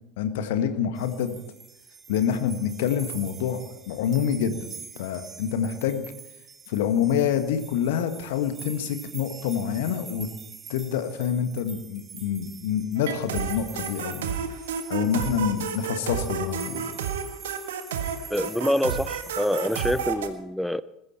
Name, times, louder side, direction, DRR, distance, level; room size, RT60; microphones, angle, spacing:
voice 1, 0.2-1.4 2.1-4.7 4.9-6.0 6.7-10.3 10.7-14.3 14.9-16.9, left 8 dB, 60° left, 1.7 m, -27 dB
sound 1, 1.0-20.1, right 7 dB, 25° right, 1.6 m, -44 dB
sound 2, 13.0-20.3, right 8 dB, 65° right, 1.6 m, -31 dB
voice 2, 18.3-20.8, left 1 dB, ahead, 0.7 m, -26 dB
20.5 x 15.5 x 4.4 m
figure-of-eight pair, 75°, 0 cm